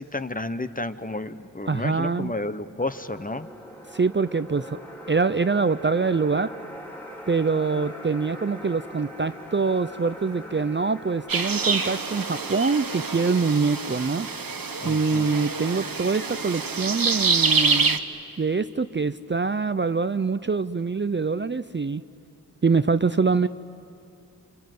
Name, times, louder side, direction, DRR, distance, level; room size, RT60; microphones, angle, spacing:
voice 1, 0.0-3.5 14.8-15.3, left 2 dB, 25° left, 11 dB, 1.0 m, -31 dB
voice 2, 1.7-2.3 3.9-4.8 5.1-6.5 7.3-14.3 14.8-18.0 18.4-22.0 22.6-23.5, right 4 dB, 35° right, 13 dB, 0.5 m, -24 dB
sound 1, 2.8-15.0, equal, 5° left, 3.5 m, -42 dB
sound 2, 11.3-18.0, right 4 dB, 75° right, 1.2 m, -26 dB
27.5 x 27.5 x 7.7 m, 2.8 s
wide cardioid pair, 60°, 35 cm